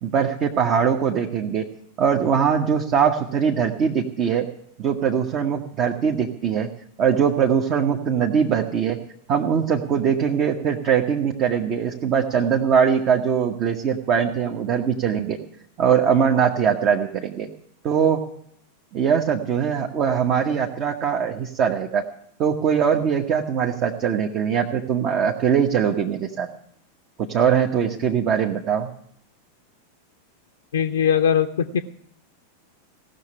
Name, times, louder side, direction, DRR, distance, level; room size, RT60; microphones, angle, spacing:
voice 1, 0.0-1.6 2.0-4.5 4.8-6.7 7.0-9.0 9.3-15.4 15.8-17.5 17.8-18.2 18.9-22.0 22.4-26.5 27.3-28.9, right 7 dB, 35° right, 2 dB, 1.1 m, -21 dB
voice 2, 30.7-31.8, left 8 dB, 65° left, 5 dB, 0.6 m, -20 dB
17.0 x 6.6 x 9.8 m, 0.69 s
figure-of-eight pair, 90°, 0 cm